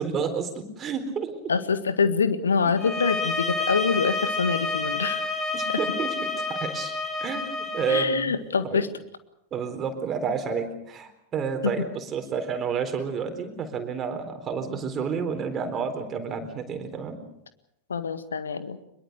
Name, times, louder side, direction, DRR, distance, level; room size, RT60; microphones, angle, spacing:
voice 1, 0.0-1.4 5.5-8.4 8.6-8.8 9.5-17.2, right 6 dB, 25° right, 6 dB, 4.0 m, -30 dB
voice 2, 1.5-5.2 7.9-8.9 11.8-11.9 17.9-18.8, left 5 dB, 70° left, 11 dB, 1.7 m, -25 dB
sound 1, 2.8-8.1, left 3 dB, 15° left, 2.4 m, -29 dB
24.0 x 22.0 x 6.8 m, 0.81 s
figure-of-eight pair, 90°, 0 cm